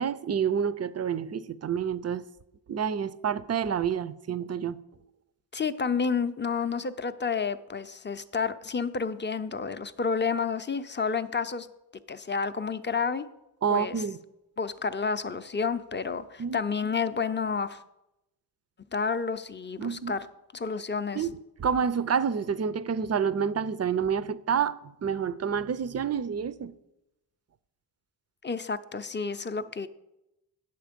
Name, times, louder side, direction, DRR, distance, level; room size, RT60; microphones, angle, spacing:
voice 1, 0.0-2.2 2.7-4.8 13.6-14.2 16.4-16.6 19.8-20.2 21.1-24.7 25.0-26.7, right 7 dB, 35° right, 0.5 m, -28 dB
voice 2, 5.5-11.7 12.1-13.3 13.7-14.0 14.6-17.8 18.9-20.3 20.5-21.3 28.4-29.9, left 5 dB, 25° left, 0.5 m, -30 dB
9.2 x 6.9 x 5.1 m
cardioid pair, 65°, 46 cm